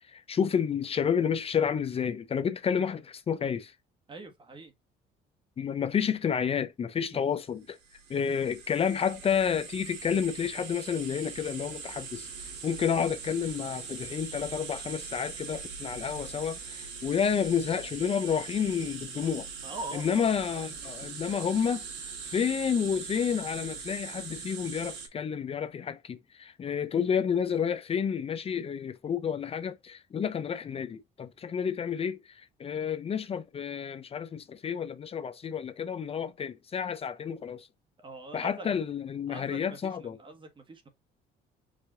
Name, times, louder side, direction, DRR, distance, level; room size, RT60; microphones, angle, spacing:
voice 1, 0.1-3.7 5.6-7.8 8.1-12.3 12.6-19.5 20.0-21.8 22.2-37.7 38.3-40.2, left 7 dB, 35° left, 0.6 m, -30 dB
voice 2, 4.1-4.7 19.6-20.3 38.0-38.7 39.3-40.9, right 2 dB, 30° right, 1.3 m, -43 dB
sound 1, 7.8-25.1, right 5 dB, 85° right, 2.3 m, -41 dB
5.0 x 2.7 x 3.7 m
cardioid pair, 110°, 17 cm